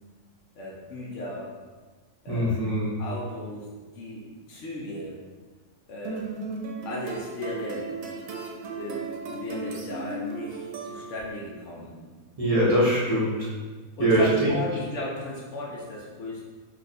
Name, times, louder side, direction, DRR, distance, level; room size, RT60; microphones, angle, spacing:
voice 1, 0.6-1.5 2.2-2.6 3.0-3.7 3.9-5.2 5.9-6.3 6.8-7.9 8.7-9.0 9.3-12.0 14.0-16.4, left 1 dB, 65° left, -4 dB, 0.9 m, -35 dB
voice 2, 2.3-3.0 12.4-13.5 14.0-14.5, right 1 dB, 35° right, -8 dB, 0.6 m, -22 dB
sound 1, 6.0-11.4, right 3 dB, 75° right, 1.0 m, -36 dB
2.6 x 2.4 x 4.1 m, 1.3 s
omnidirectional pair, 1.5 m